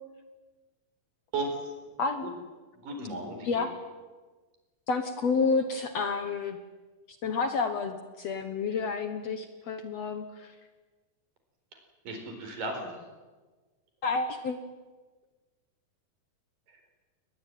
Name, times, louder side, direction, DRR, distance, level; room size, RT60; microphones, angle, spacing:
voice 1, 1.3-1.7 2.2-2.3 2.8-3.6 12.0-12.8, right 2 dB, 60° right, 4 dB, 6.0 m, -35 dB
voice 2, 2.0-2.3 3.4-3.7 4.9-6.6 7.2-10.5 14.0-14.6, left 4 dB, 60° left, 8 dB, 1.9 m, -30 dB
22.5 x 20.0 x 9.3 m, 1.3 s
omnidirectional pair, 4.3 m